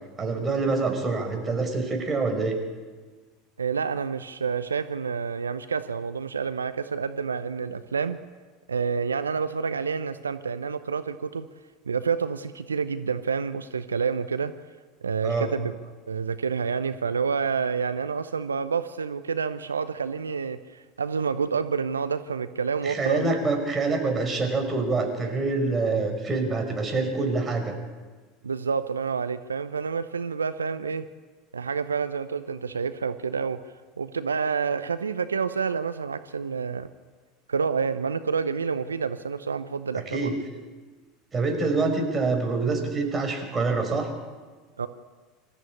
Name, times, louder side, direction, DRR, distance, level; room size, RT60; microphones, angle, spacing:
voice 1, 0.2-2.6 15.2-15.5 22.8-27.7 40.0-40.3 41.3-44.1, right 3 dB, 20° right, 4 dB, 5.2 m, -26 dB
voice 2, 3.6-8.2 8.7-11.5 11.9-14.5 15.0-15.7 16.1-23.2 28.4-31.1 31.5-36.9 37.5-40.3 44.8-44.9, right 5 dB, 80° right, 12 dB, 0.7 m, -28 dB
25.5 x 14.0 x 8.6 m, 1.4 s
figure-of-eight pair, 75°, 0 cm